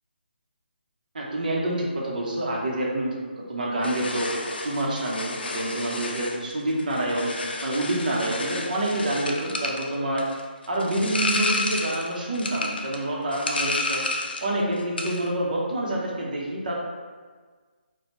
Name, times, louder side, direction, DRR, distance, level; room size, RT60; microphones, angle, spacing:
voice 1, 1.1-4.3 4.6-7.3 7.6-10.3 10.7-14.1 14.4-16.8, right 1 dB, 50° right, -3 dB, 0.8 m, -27 dB
sound 1, 3.8-14.5 14.8-15.3, left 2 dB, 65° left, 0.4 m, -31 dB
4.0 x 2.2 x 2.9 m, 1.5 s
figure-of-eight pair, 150°, 6 cm